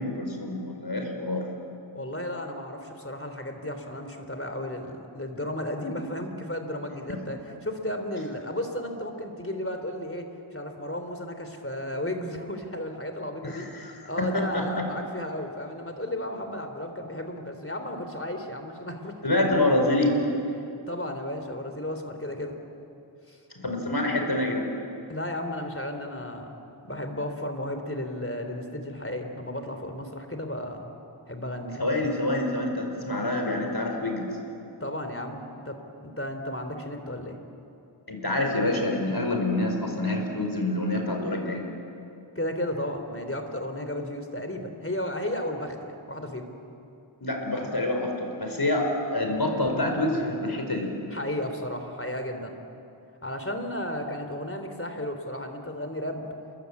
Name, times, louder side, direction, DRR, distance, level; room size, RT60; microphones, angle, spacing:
voice 1, 0.0-1.4 7.1-7.2 13.4-13.9 14.2-14.8 19.2-20.2 23.6-24.7 31.8-34.3 38.1-41.7 47.2-50.9, left 1 dB, 50° left, 3 dB, 5.3 m, -27 dB
voice 2, 1.9-10.3 10.5-13.7 14.0-19.4 20.9-22.6 23.3-23.4 25.1-26.6 26.8-30.9 31.3-31.8 34.8-35.8 36.0-37.4 42.3-46.5 51.1-52.6 53.2-56.2, left 1 dB, 25° left, 6 dB, 3.3 m, -34 dB
28.0 x 23.0 x 8.4 m, 2.7 s
wide cardioid pair, 60°, 48 cm